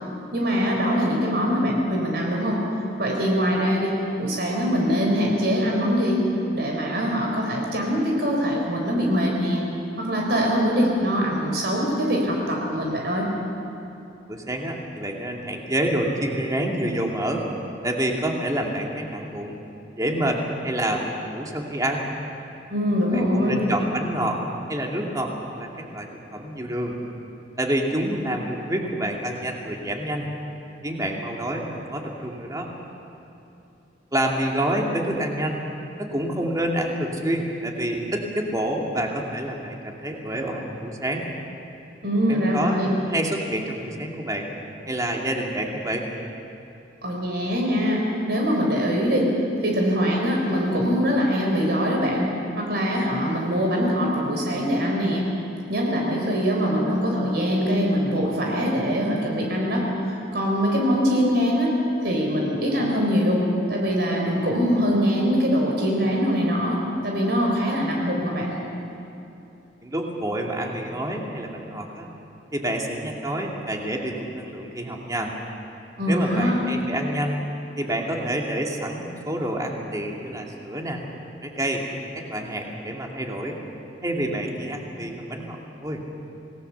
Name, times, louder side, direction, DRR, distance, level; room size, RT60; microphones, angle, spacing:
voice 1, 0.3-2.6 3.0-6.2 6.5-9.6 10.0-13.3 22.7-23.6 42.0-42.9 47.0-49.3 49.6-55.3 55.7-61.7 62.0-68.5 76.0-76.6, equal, 60° right, -1 dB, 4.1 m, -23 dB
voice 2, 14.3-17.4 17.8-19.6 20.0-22.1 23.1-24.4 24.7-27.0 27.6-30.3 30.8-32.7 34.1-35.6 36.0-41.3 42.3-44.5 44.9-46.1 69.8-72.1 72.5-75.3 76.1-77.4 77.8-81.0 81.4-81.8 82.1-83.6 84.0-86.0, right 1 dB, 20° right, 0 dB, 2.5 m, -28 dB
27.5 x 19.0 x 7.0 m, 2.8 s
head